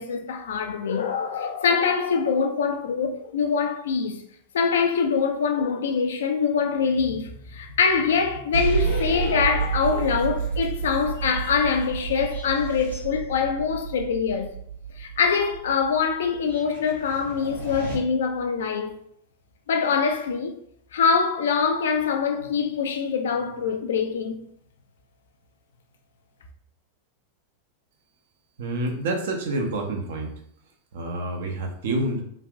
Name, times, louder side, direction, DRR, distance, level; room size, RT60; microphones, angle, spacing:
voice 1, 0.0-4.2 4.5-14.5 15.0-19.0 19.7-20.5 20.9-24.4, left 5 dB, 60° left, 0.3 m, -24 dB
sound 1, 8.5-18.0, right 6 dB, 85° right, 1.0 m, -31 dB
voice 2, 28.6-30.3 30.9-32.2, right 2 dB, 55° right, 0.6 m, -28 dB
3.2 x 2.4 x 2.4 m
figure-of-eight pair, 90°, 0 cm